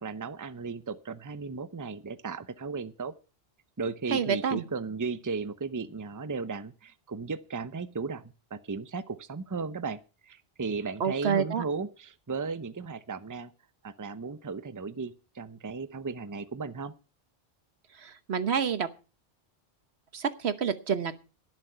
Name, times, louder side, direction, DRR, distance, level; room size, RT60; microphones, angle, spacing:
voice 1, 0.0-3.1 3.8-13.5 13.8-16.9, right 4 dB, 20° right, 14 dB, 0.6 m, -35 dB
voice 2, 4.1-4.6 11.0-11.6 18.0-18.9 20.1-21.2, right 7 dB, 85° right, 12 dB, 1.4 m, -28 dB
18.0 x 7.6 x 5.7 m, 0.33 s
omnidirectional pair, 1.1 m